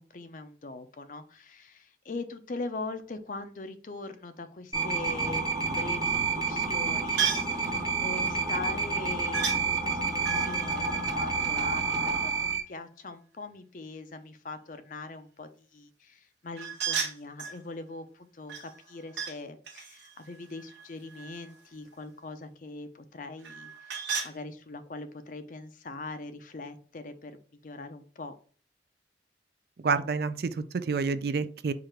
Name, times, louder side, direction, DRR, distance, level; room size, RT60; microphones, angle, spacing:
voice 1, 0.0-28.3, left 3 dB, 45° left, 10 dB, 0.5 m, -42 dB
sound 1, 4.7-12.6, right 4 dB, 20° right, 0.9 m, -29 dB
sound 2, 7.2-7.6 9.3-9.6 10.2-12.0 16.6-17.6 18.5-19.4 19.7-21.6 23.4-24.3, right 6 dB, 80° right, 1.2 m, -34 dB
voice 2, 29.8-31.7, right 4 dB, 55° right, 12 dB, 0.4 m, -28 dB
4.8 x 2.5 x 4.4 m, 0.43 s
head